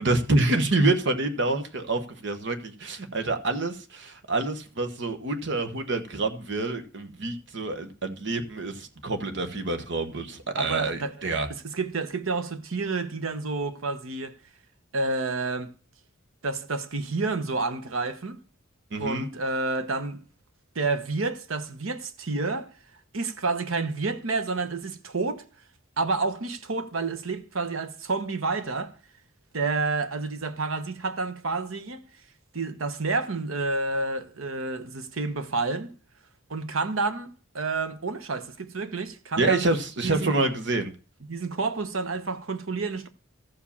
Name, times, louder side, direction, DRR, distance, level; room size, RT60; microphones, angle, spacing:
voice 1, 0.0-11.5 18.9-19.3 39.4-40.9, right 2 dB, 60° right, 1.3 m, -27 dB
voice 2, 10.6-11.1 11.5-14.4 14.9-15.7 16.4-18.4 19.0-20.2 20.7-22.7 23.1-25.4 26.0-29.0 29.5-32.0 32.5-35.9 36.5-39.8 40.0-40.3 41.3-43.1, right 3 dB, 80° right, 1.0 m, -29 dB
13.5 x 5.0 x 7.1 m
head